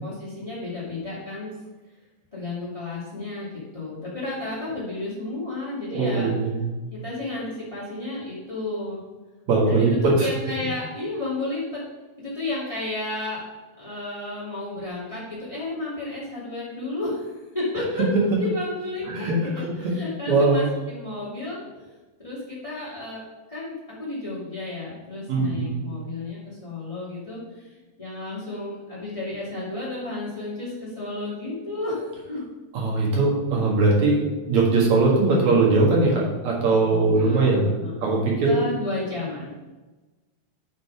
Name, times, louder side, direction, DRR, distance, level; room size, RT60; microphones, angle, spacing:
voice 1, 0.0-1.5 2.3-3.5 3.7-6.3 6.9-9.0 9.6-11.8 12.2-13.4 13.8-21.6 22.2-23.2 23.5-32.4 36.9-38.1 38.4-39.5, left 2 dB, 45° left, -8 dB, 0.4 m, -32 dB
voice 2, 5.9-6.8 9.5-10.3 19.1-19.9 20.3-20.7 25.3-25.8 32.7-34.2 34.5-38.6, right 3 dB, 55° right, -3 dB, 2.1 m, -21 dB
11.0 x 4.1 x 4.7 m, 1.2 s
omnidirectional pair, 5.4 m